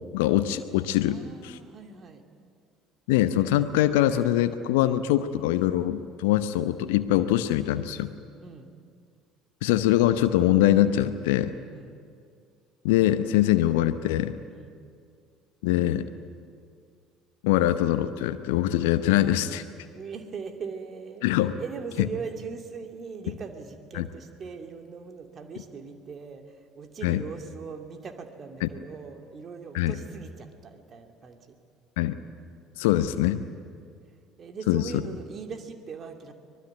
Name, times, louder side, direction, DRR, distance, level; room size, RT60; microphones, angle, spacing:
voice 1, 0.1-1.2 3.1-8.1 9.6-11.5 12.8-14.3 15.6-16.1 17.4-19.6 21.2-21.5 23.9-24.1 27.0-27.2 28.6-28.7 29.7-29.9 32.0-32.1 32.8-33.4 34.7-34.8, left 13 dB, 70° left, 11 dB, 0.8 m, -23 dB
voice 2, 1.1-2.2 8.4-8.7 11.7-12.0 14.5-14.7 19.9-31.6 34.4-36.3, right 5 dB, 40° right, 5 dB, 2.6 m, -40 dB
24.5 x 20.0 x 9.4 m, 2.2 s
figure-of-eight pair, 60°, 0 cm